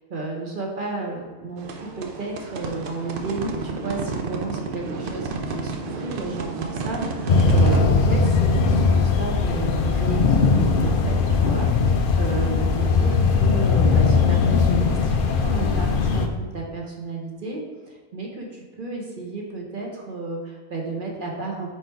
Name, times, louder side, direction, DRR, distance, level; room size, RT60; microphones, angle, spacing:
voice 1, 0.1-17.6 17.9-21.7, right 3 dB, 40° right, -1 dB, 1.1 m, -32 dB
sound 1, 1.6-7.9, right 3 dB, 65° right, 0.5 m, -31 dB
sound 2, 7.3-16.3, left 4 dB, 65° left, 0.5 m, -19 dB
5.0 x 4.5 x 4.5 m, 1.5 s
omnidirectional pair, 1.5 m